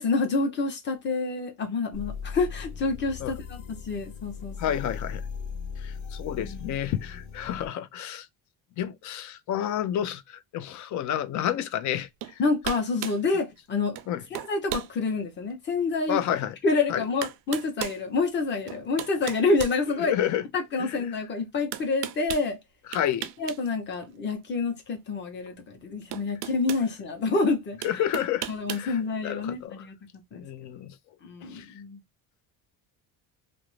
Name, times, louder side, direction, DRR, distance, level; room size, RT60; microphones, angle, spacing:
voice 1, 0.0-4.8 6.4-6.6 12.4-14.0 14.3-16.2 16.6-20.1 20.5-22.6 23.4-27.8 28.5-29.9 30.3-30.4 31.2-32.0, left 3 dB, 30° left, 0.8 m, -28 dB
sound 1, 1.9-7.7, left 6 dB, 90° left, 0.9 m, -38 dB
voice 2, 4.6-5.2 5.8-8.3 8.8-12.1 14.1-14.2 16.1-16.6 16.9-17.0 20.0-20.4 20.8-21.2 22.9-23.3 27.8-28.4 28.7-29.9 30.3-30.9 31.5-31.7, left 10 dB, 55° left, 0.4 m, -30 dB
sound 2, 12.2-12.4 12.6-13.2 14.0-14.1 14.3-14.9 15.5-15.6 16.7-16.8 17.2-18.0 18.7-20.4 21.7-22.5 22.9-23.6 23.9-24.1 25.5-25.6 26.1-26.9 27.8-28.9, right 11 dB, 85° right, 0.5 m, -35 dB
2.5 x 2.0 x 2.9 m
cardioid pair, 150°, 36 cm